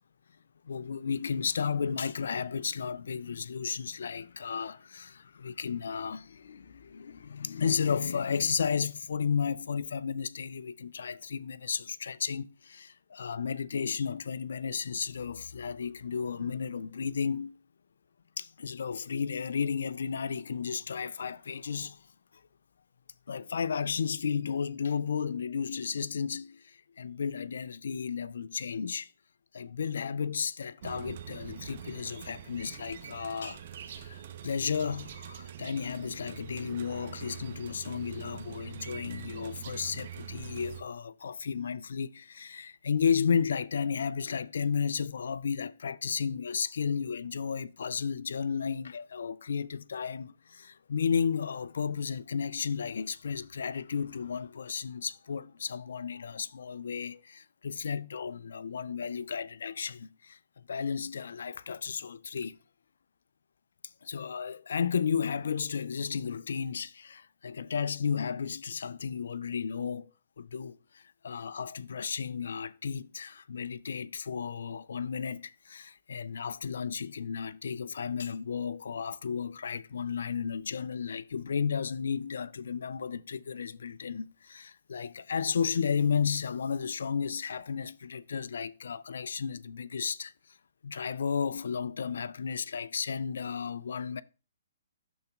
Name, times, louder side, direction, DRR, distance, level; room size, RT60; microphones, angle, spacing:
voice 1, 0.6-17.6 18.4-22.0 23.3-29.1 29.5-62.6 64.0-70.1 70.4-90.3 90.8-94.2, left 6 dB, 70° left, 0.4 m, -33 dB
sound 1, 30.8-40.8, right 10 dB, 55° right, 0.7 m, -44 dB
11.5 x 3.9 x 2.3 m
hypercardioid pair, 130°, 0 cm